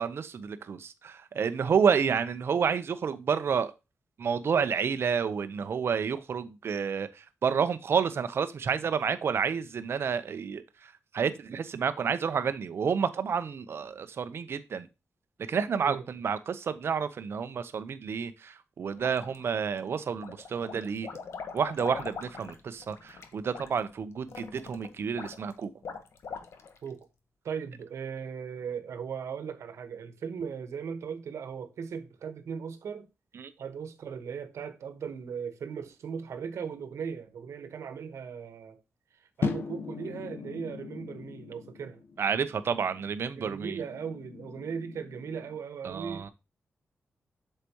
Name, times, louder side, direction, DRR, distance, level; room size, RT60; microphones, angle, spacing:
voice 1, 0.0-3.7 4.2-7.1 7.4-10.6 11.1-14.9 15.5-21.1 21.5-25.7 33.4-33.5 42.2-43.8 45.8-46.3, right 6 dB, 55° right, 0.9 m, -29 dB
sound 1, 19.0-19.8 20.2-26.9, left 5 dB, 65° left, 1.3 m, -42 dB
voice 2, 27.4-33.1 33.6-38.8 39.2-42.0 43.3-46.3, right 6 dB, 80° right, 1.4 m, -38 dB
sound 2, 39.4-45.6, left 5 dB, 50° left, 1.2 m, -39 dB
8.2 x 6.7 x 3.0 m
wide cardioid pair, 140°, 5 cm